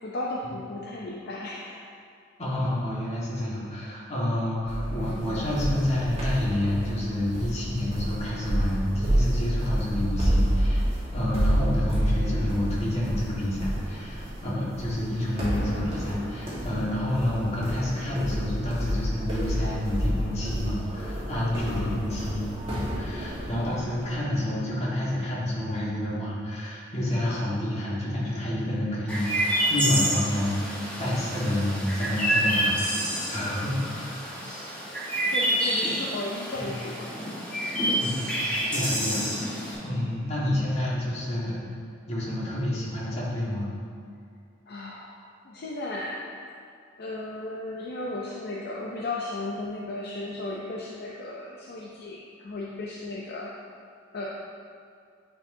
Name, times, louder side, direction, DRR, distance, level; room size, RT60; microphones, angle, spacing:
voice 1, 0.0-1.9 21.6-22.1 34.4-34.5 35.3-37.1 44.7-46.3 47.0-53.5 54.1-54.3, left 2 dB, 55° left, -3 dB, 0.5 m, -35 dB
voice 2, 2.4-10.8 11.1-34.3 36.5-36.7 38.0-38.3 38.7-39.6 39.8-41.5 42.1-43.8, left 1 dB, 35° left, -6 dB, 1.6 m, -29 dB
sound 1, 4.7-24.2, equal, 30° right, 1.4 m, -29 dB
Chirp tweet, 29.1-39.7, equal, 5° left, 1.4 m, -28 dB
9.4 x 4.6 x 2.7 m, 2.3 s
head